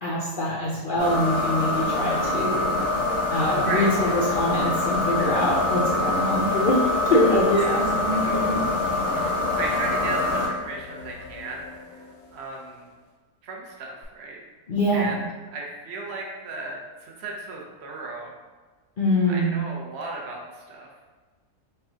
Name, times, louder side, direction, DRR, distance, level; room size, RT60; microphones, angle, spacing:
voice 1, 0.0-2.8 3.3-8.7 14.7-15.2 19.0-19.5, left 1 dB, 65° left, -6 dB, 0.5 m, -24 dB
sound 1, 1.0-10.5, left 2 dB, 85° right, 2.0 m, -25 dB
sound 2, 2.4-12.8 14.0-14.1, left 4 dB, 85° left, 1.2 m, -41 dB
voice 2, 3.3-4.2 7.5-8.6 9.1-12.9 13.4-14.4 14.9-15.2 15.5-18.3 19.2-20.9, right 3 dB, 55° right, -1 dB, 0.8 m, -35 dB
5.5 x 2.3 x 2.7 m, 1.4 s
omnidirectional pair, 1.6 m